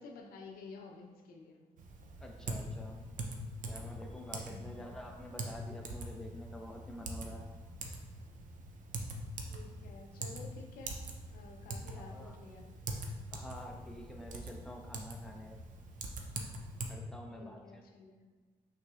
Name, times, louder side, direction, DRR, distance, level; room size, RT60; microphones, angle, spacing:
voice 1, 0.0-1.6 4.4-4.9 9.5-11.0 11.3-12.7 17.3-18.2, left 3 dB, 80° left, 2 dB, 0.7 m, -51 dB
Typing, 1.8-16.9, right 2 dB, 60° right, 0.6 m, -43 dB
voice 2, 2.2-3.0 3.7-7.5 11.9-12.3 13.3-15.6 16.9-17.8, left 1 dB, 5° left, 1 dB, 0.7 m, -48 dB
5.7 x 3.3 x 2.4 m, 1.4 s
supercardioid pair, 65°, 15 cm